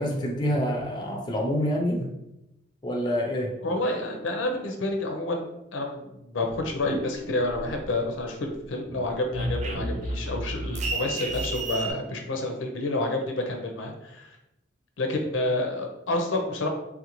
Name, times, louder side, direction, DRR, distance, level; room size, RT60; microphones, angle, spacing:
voice 1, 0.0-2.1 2.8-3.5, equal, 20° left, 0 dB, 0.5 m, -27 dB
voice 2, 3.6-5.5 5.7-14.4 15.0-16.7, left 2 dB, 80° left, 3 dB, 0.5 m, -29 dB
sound 1, 6.5-8.2 8.5-11.9, right 1 dB, 35° right, 0.3 m, -32 dB
3.5 x 2.5 x 2.9 m, 0.89 s
head